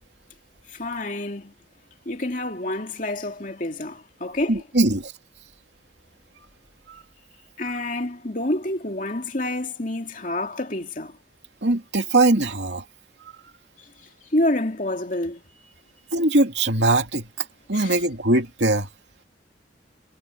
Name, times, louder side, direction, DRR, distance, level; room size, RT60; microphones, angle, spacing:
voice 1, 0.8-1.5 2.1-4.6 7.6-11.1 14.3-15.4 17.7-18.0, left 1 dB, 45° left, 2.7 m, -28 dB
voice 2, 4.5-5.1 11.6-12.8 16.1-17.3 17.7-18.9, right 2 dB, 75° right, 2.8 m, -21 dB
head